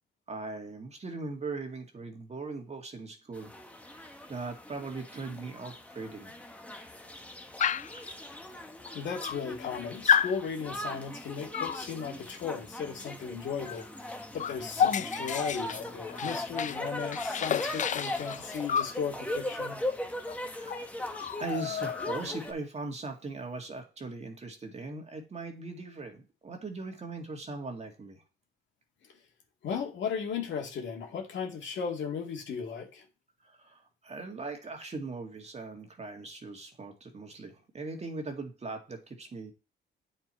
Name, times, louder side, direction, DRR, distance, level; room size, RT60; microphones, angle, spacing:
voice 1, 0.3-3.5 3.8-6.4 20.4-28.2 33.4-39.5, right 3 dB, 35° right, 1.9 m, -40 dB
sound 1, 3.3-22.5, left 1 dB, 5° left, 1.2 m, -39 dB
Dog, 7.6-8.0 8.9-9.0 9.2-9.7 10.1-10.4 11.5-11.8 13.7-13.8 14.1-16.8 17.1-19.0 20.3-20.4 20.7-20.8 21.1-22.4, left 8 dB, 40° left, 0.4 m, -30 dB
voice 2, 8.9-19.8 29.6-33.1, left 6 dB, 70° left, 2.1 m, -36 dB
8.7 x 4.5 x 4.3 m
cardioid pair, 90°, 20 cm